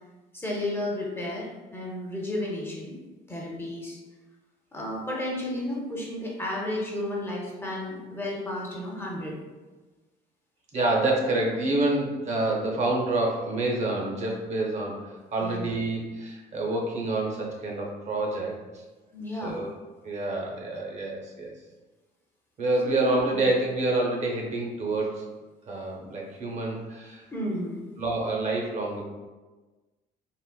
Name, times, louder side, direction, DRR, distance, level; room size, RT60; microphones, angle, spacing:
voice 1, 0.3-3.0 3.3-4.0 4.7-9.4 15.4-15.7 19.1-19.6 22.8-23.4 27.3-27.8, left 1 dB, 15° left, -3 dB, 0.5 m, -33 dB
voice 2, 10.7-18.8 19.4-19.8 20.0-21.5 22.6-25.2 25.7-27.3 28.0-29.0, right 2 dB, 45° right, -1 dB, 0.6 m, -27 dB
3.6 x 2.0 x 2.2 m, 1.2 s
cardioid pair, 110°, 17 cm